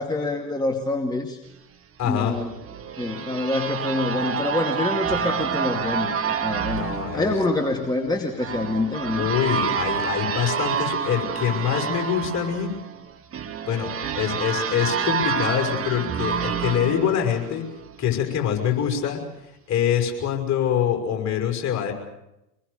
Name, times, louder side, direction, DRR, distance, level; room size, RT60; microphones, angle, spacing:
voice 1, 0.0-1.4 2.0-2.5 3.0-6.8 7.1-9.3, left 2 dB, 10° left, 2 dB, 2.3 m, -26 dB
voice 2, 2.0-2.4 6.6-7.4 9.2-12.7 13.7-13.9 14.1-17.6 18.0-19.2 19.7-21.9, left 9 dB, 35° left, 3 dB, 6.1 m, -24 dB
sound 1, 2.3-18.0, right 7 dB, 30° right, 1.8 m, -28 dB
25.5 x 21.0 x 6.8 m, 0.90 s
hypercardioid pair, 85°, 47 cm